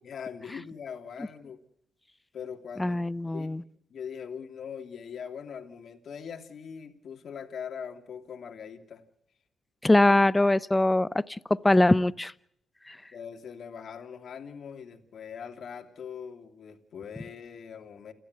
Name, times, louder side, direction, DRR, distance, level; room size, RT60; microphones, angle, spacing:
voice 1, 0.0-1.6 2.3-9.0 13.1-18.1, left 7 dB, 60° left, 6 dB, 3.0 m, -41 dB
voice 2, 2.8-3.6 9.8-11.1 11.5-12.3 12.9-13.0, left 1 dB, 15° left, 18 dB, 0.9 m, -22 dB
29.5 x 12.5 x 8.0 m, 0.69 s
supercardioid pair, 65°, 0 cm